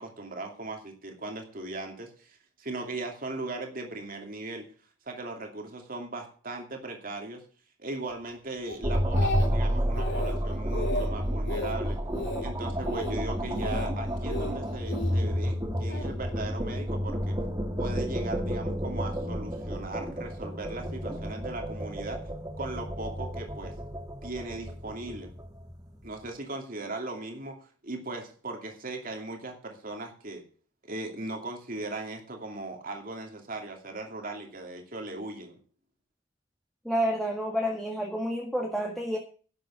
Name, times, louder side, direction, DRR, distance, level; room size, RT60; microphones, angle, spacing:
voice 1, 0.0-4.7 5.1-7.4 7.8-12.0 12.4-17.4 17.8-22.2 22.6-23.7 24.2-25.3 26.0-30.4 30.8-35.6, right 2 dB, 45° right, 3 dB, 2.6 m, -38 dB
Speech, 8.7-9.7 9.9-10.4 10.7-11.1 11.5-11.7 12.1-12.5 12.8-13.1 13.5-13.9 14.3-15.1 15.9-16.1, left 1 dB, 60° left, 3.1 m, -34 dB
sound 1, 8.8-26.1, equal, 20° right, 2.0 m, -31 dB
voice 2, 36.9-39.2, equal, ahead, -1 dB, 1.8 m, -29 dB
11.5 x 7.7 x 8.2 m, 0.40 s
head